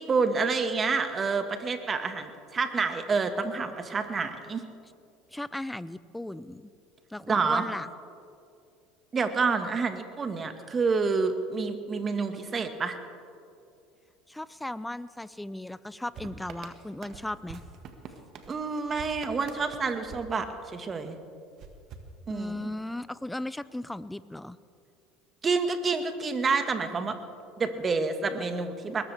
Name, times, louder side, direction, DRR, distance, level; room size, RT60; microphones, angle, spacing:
voice 1, 0.0-4.6 7.3-7.6 9.1-13.0 18.5-21.2 22.3-22.7 25.4-27.2 27.6-29.0, right 4 dB, 30° right, 8 dB, 1.7 m, -28 dB
voice 2, 5.3-6.7 7.1-7.9 14.3-17.6 22.3-24.6, left 1 dB, 5° left, 17 dB, 0.6 m, -36 dB
sound 1, 16.1-21.0 21.6-22.8, right 5 dB, 50° right, 1.7 m, -47 dB
21.0 x 19.5 x 3.5 m, 2.4 s
hypercardioid pair, 75°, 0 cm